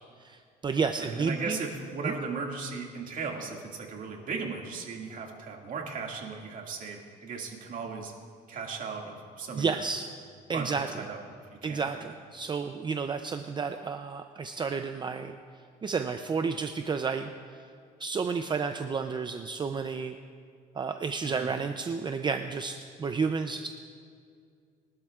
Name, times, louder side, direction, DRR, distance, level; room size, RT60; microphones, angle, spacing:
voice 1, 0.2-1.6 2.0-2.1 9.6-10.1 10.5-10.9 11.6-15.4 15.8-17.3 18.0-20.2 20.7-23.7, right 5 dB, 25° right, 7 dB, 0.5 m, -31 dB
voice 2, 1.0-8.1 8.5-9.8 10.5-11.2 11.6-12.1 21.2-21.5, right 4 dB, 50° right, 0 dB, 2.2 m, -37 dB
22.5 x 12.0 x 2.4 m, 2.2 s
cardioid pair, 110°, 17 cm